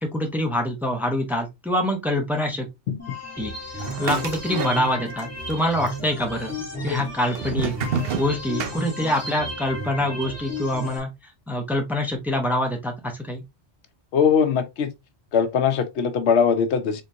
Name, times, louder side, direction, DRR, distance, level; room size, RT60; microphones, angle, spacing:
voice 1, 0.0-2.7 3.4-7.7 8.1-13.4, left 1 dB, ahead, 0.8 m, -25 dB
sound 1, 3.0-11.0, left 1 dB, 15° left, 1.6 m, -34 dB
sound 2, 3.8-5.2 5.5-6.2 6.9-9.3, right 6 dB, 65° right, 0.8 m, -30 dB
voice 2, 14.1-14.9 15.3-17.0, left 6 dB, 80° left, 0.9 m, -21 dB
3.8 x 3.7 x 2.7 m
omnidirectional pair, 1.1 m